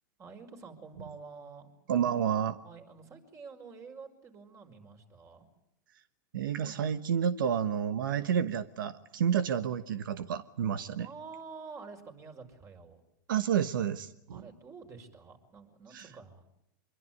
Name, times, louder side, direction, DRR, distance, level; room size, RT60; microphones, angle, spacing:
voice 1, 0.2-1.7 2.6-5.5 11.0-13.0 14.3-16.5, right 5 dB, 30° right, 5 dB, 5.6 m, -48 dB
voice 2, 1.9-2.6 6.3-11.1 13.3-14.4 15.9-16.1, right 8 dB, 85° right, 12 dB, 1.2 m, -30 dB
25.5 x 23.0 x 9.6 m, 0.81 s
hypercardioid pair, 120°, 11 cm